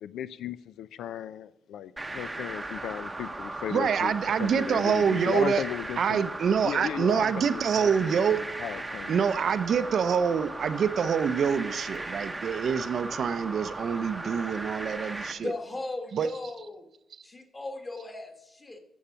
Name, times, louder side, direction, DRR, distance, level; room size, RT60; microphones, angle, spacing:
voice 1, 0.0-4.1 4.4-6.3 6.6-9.5, left 10 dB, 90° left, 16 dB, 0.4 m, -36 dB
sound 1, 2.0-15.3, right 2 dB, 10° right, 0.8 m, -37 dB
voice 2, 3.7-5.6 6.0-8.4 9.1-15.5 16.1-16.3, right 7 dB, 45° right, 12 dB, 0.5 m, -26 dB
voice 3, 15.3-16.9 17.2-18.8, left 2 dB, 15° left, 5 dB, 1.3 m, -37 dB
12.0 x 7.2 x 5.6 m, 0.86 s
cardioid pair, 175°, 0 cm